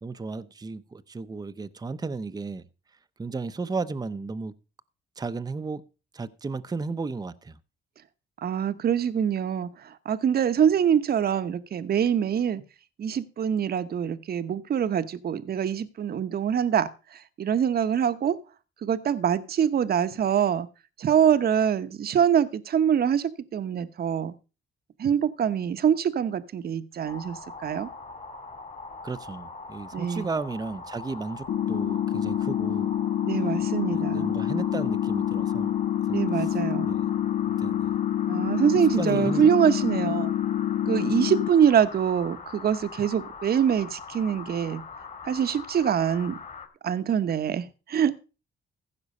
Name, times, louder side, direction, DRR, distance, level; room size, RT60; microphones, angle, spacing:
voice 1, 0.0-2.6 3.2-4.5 5.2-5.8 6.1-7.6 29.0-32.9 33.9-35.7 36.1-36.2 36.8-37.2 37.5-37.9 39.0-39.4, right 4 dB, 20° right, 0.7 m, -34 dB
voice 2, 8.4-12.6 13.0-18.4 18.8-20.7 21.0-24.3 25.0-27.9 29.9-30.3 33.2-34.4 36.1-37.0 38.3-40.3 40.9-44.8 45.2-46.4 46.8-48.2, right 8 dB, 50° right, 0.9 m, -24 dB
sound 1, 27.0-46.7, left 4 dB, 40° left, 2.6 m, -42 dB
sound 2, 31.5-41.5, left 11 dB, 65° left, 0.8 m, -27 dB
15.5 x 6.0 x 5.4 m
cardioid pair, 90°, 20 cm